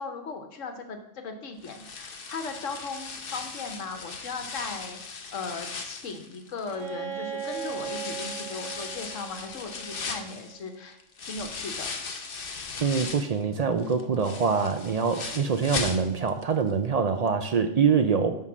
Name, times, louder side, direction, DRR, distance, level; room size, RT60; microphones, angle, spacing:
voice 1, 0.0-11.0 11.3-11.9, left 4 dB, 80° left, 5 dB, 1.3 m, -37 dB
sound 1, 1.6-6.9 7.4-13.4 13.8-16.4 16.7-16.8 17.3-17.4, left 4 dB, 50° left, 0.9 m, -38 dB
Bowed string instrument, 6.7-10.4, right 8 dB, 85° right, 1.5 m, -38 dB
voice 2, 12.8-18.4, right 5 dB, 60° right, 7 dB, 0.4 m, -24 dB
9.6 x 3.7 x 6.1 m, 0.78 s
omnidirectional pair, 1.3 m